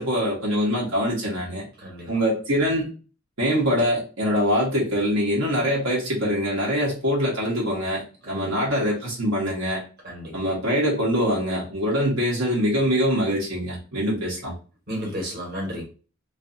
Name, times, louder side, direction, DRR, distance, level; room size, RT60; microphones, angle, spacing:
voice 1, 0.0-1.7 2.1-2.9 3.4-9.8 10.3-14.5, equal, 75° right, 1.0 m, -24 dB
voice 2, 1.8-2.1 8.3-8.7 10.0-10.4 14.9-15.8, equal, 50° right, 1.1 m, -33 dB
2.6 x 2.5 x 2.5 m
head